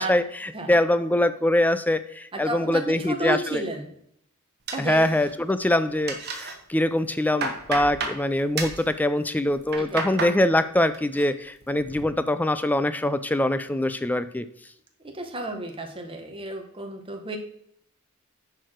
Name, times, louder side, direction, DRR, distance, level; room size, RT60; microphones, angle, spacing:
voice 1, 0.0-3.6 4.8-14.5, left 1 dB, 5° left, 12 dB, 0.4 m, -23 dB
voice 2, 2.3-3.9 4.7-5.1 9.8-10.1 15.0-17.4, right 1 dB, 25° right, 4 dB, 1.3 m, -32 dB
sound 1, 4.7-5.5 5.8-6.5 7.0-8.2 8.6-8.8 9.5-10.4 10.7-11.2 11.6-12.1, right 3 dB, 50° right, 1.4 m, -32 dB
10.0 x 4.7 x 4.5 m, 0.69 s
head